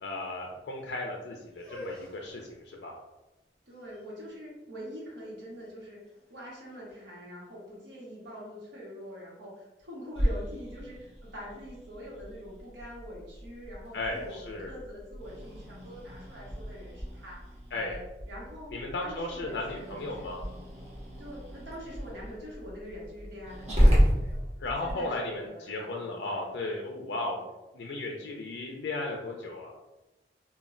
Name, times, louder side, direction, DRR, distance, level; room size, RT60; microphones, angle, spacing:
voice 1, 0.0-2.9 13.9-14.7 17.7-18.0 18.7-20.4 24.6-27.4 27.7-29.7, left 2 dB, 75° left, 0 dB, 0.4 m, -35 dB
sound 1, 1.5-7.4, equal, 5° left, 0.7 m, -49 dB
voice 2, 3.7-18.7 19.0-20.3 21.2-24.4 24.8-26.5 27.3-27.4, equal, 85° right, -4 dB, 1.0 m, -45 dB
Growling, 10.1-24.9, equal, 35° right, 0.7 m, -32 dB
2.2 x 2.1 x 3.6 m, 1.0 s
head